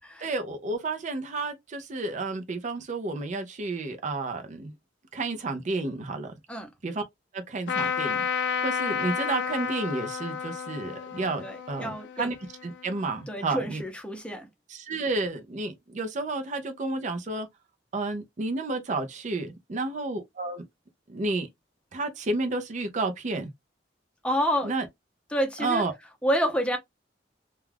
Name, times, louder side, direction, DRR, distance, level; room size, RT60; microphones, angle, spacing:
voice 1, 0.2-4.7 5.1-6.4 6.8-7.0 7.3-12.4 12.6-13.8 14.7-17.5 17.9-20.7 21.1-21.5 21.9-23.5 24.6-24.9 25.6-25.9, right 3 dB, 45° right, 0.5 m, -31 dB
Trumpet, 7.7-13.2, left 6 dB, 80° left, 0.4 m, -31 dB
voice 2, 11.4-12.3 13.3-14.5 24.2-24.7 25.3-25.8 26.2-26.8, equal, 5° left, 0.7 m, -28 dB
2.3 x 2.2 x 3.2 m
head